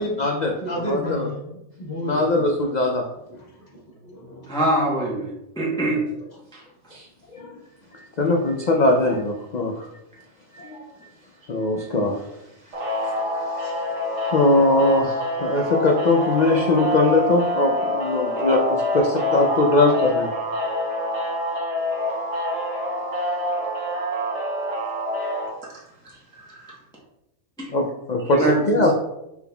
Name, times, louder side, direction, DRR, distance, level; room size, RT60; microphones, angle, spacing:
voice 1, 0.0-1.3 2.0-3.0 6.9-7.1 7.3-7.6 7.9-9.9 10.5-10.8 11.5-12.2 13.0-13.7 14.3-20.3 25.2-25.3 27.7-28.9, left 2 dB, 75° left, 1 dB, 0.4 m, -21 dB
voice 2, 0.6-2.4 3.3-3.4 4.0-4.5, equal, 35° left, -5 dB, 1.3 m, -30 dB
voice 3, 4.5-6.0 6.5-6.6 26.0-26.2 26.5-26.7 27.6-27.7 28.4-28.9, right 1 dB, 5° left, -4 dB, 0.8 m, -24 dB
sound 1, 12.7-25.5, left 1 dB, 60° right, 1.3 m, -26 dB
6.1 x 3.5 x 2.3 m, 0.87 s
omnidirectional pair, 1.4 m